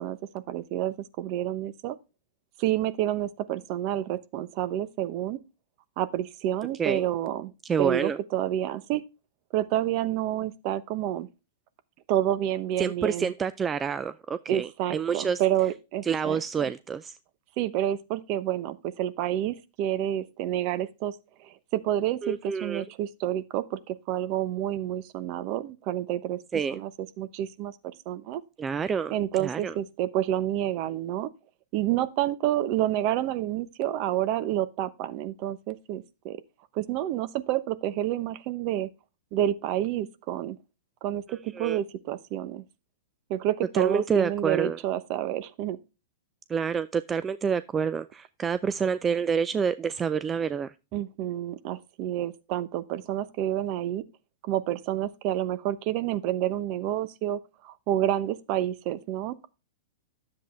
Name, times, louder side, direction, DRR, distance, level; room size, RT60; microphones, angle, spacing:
voice 1, 0.0-2.0 2.6-5.4 6.0-7.5 7.8-9.1 9.5-11.3 12.1-13.3 14.5-16.7 17.6-26.4 26.7-26.9 27.2-27.8 28.1-28.4 29.1-31.3 31.7-36.4 36.7-38.9 39.3-40.6 41.0-42.6 43.3-45.8 50.9-54.0 54.4-59.5, right 12 dB, 45° right, 0.9 m, -29 dB
voice 2, 7.7-8.2 12.8-15.4 16.0-17.2 22.2-22.8 26.5-26.8 28.6-29.1 29.4-29.7 41.5-41.8 43.7-44.8 46.5-50.7, right 6 dB, 20° right, 0.4 m, -28 dB
10.5 x 7.6 x 3.2 m
hypercardioid pair, 135°, 0 cm